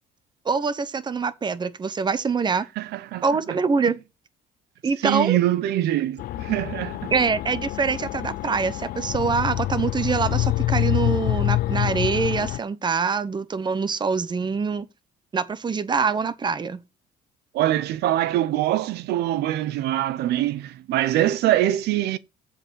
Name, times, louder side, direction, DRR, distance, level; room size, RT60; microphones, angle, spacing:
voice 1, 0.4-2.7 3.2-4.0 4.8-5.4 7.1-14.9 15.3-16.8, right 5 dB, 25° right, 1.0 m, -24 dB
voice 2, 2.8-3.2 5.0-7.1 17.5-22.2, right 13 dB, 75° right, 0.8 m, -23 dB
sound 1, 6.2-12.6, left 16 dB, 65° left, 0.4 m, -26 dB
7.5 x 4.9 x 6.4 m
cardioid pair, 110°, 17 cm